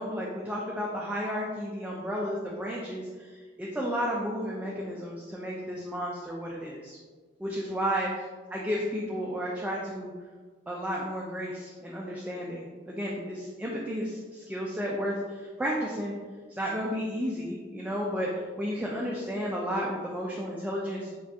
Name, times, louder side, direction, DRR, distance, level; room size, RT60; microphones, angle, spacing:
voice 1, 0.0-7.0 7.4-8.3 8.5-10.1 10.7-16.2 16.6-21.2, equal, 10° right, -4 dB, 0.3 m, -32 dB
4.4 x 2.3 x 2.7 m, 1.5 s
head